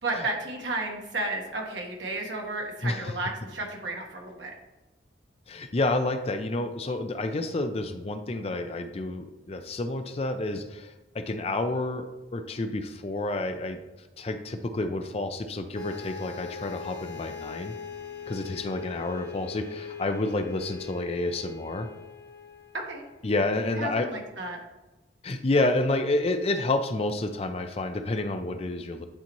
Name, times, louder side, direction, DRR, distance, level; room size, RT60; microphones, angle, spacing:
voice 1, 0.0-4.5 22.9-23.0 23.7-24.6, right 2 dB, 75° right, 1 dB, 1.3 m, -33 dB
voice 2, 2.8-3.1 5.5-13.8 14.2-17.7 18.3-21.9 23.2-24.1 25.2-29.1, left 2 dB, 30° left, 7 dB, 0.4 m, -29 dB
sound 1, 15.7-23.5, left 7 dB, 55° left, 1.8 m, -41 dB
9.8 x 4.1 x 3.0 m, 1.1 s
head